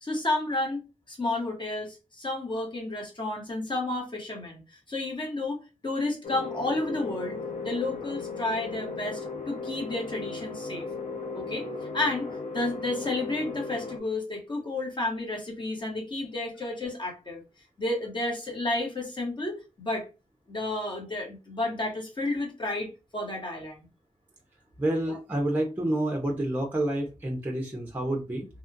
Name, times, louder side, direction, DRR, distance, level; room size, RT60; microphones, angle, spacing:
voice 1, 0.0-4.6 4.9-7.4 7.6-9.2 9.5-10.9 11.3-11.7 11.9-12.3 12.5-17.4 17.8-20.1 20.5-23.8 25.1-25.2, left 2 dB, 35° left, 0 dB, 1.1 m, -31 dB
sound 1, 6.2-14.0, left 4 dB, 70° left, 0.5 m, -36 dB
voice 2, 24.8-28.5, right 1 dB, 15° right, 1 dB, 0.5 m, -28 dB
2.8 x 2.3 x 2.5 m, 0.28 s
wide cardioid pair, 120°, 13 cm